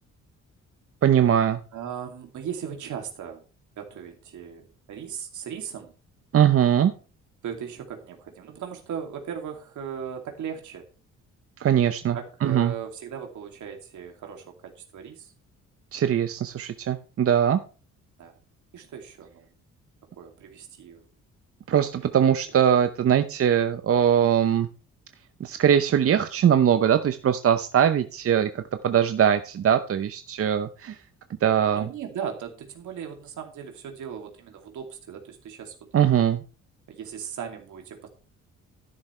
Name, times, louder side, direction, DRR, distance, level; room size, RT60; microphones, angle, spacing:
voice 1, 1.0-1.6 6.3-6.9 11.6-12.7 15.9-17.6 21.7-24.7 25.4-31.0 31.4-31.9 35.9-36.4, right 9 dB, 50° right, 9 dB, 0.8 m, -21 dB
voice 2, 1.7-3.4 3.8-5.9 7.4-10.9 12.1-15.3 18.2-18.3 18.7-19.5 20.2-21.0 22.2-22.3 31.8-35.8 36.9-38.1, right 8 dB, 75° right, 3 dB, 2.7 m, -37 dB
12.0 x 10.5 x 3.3 m, 0.37 s
cardioid pair, 90°, 30 cm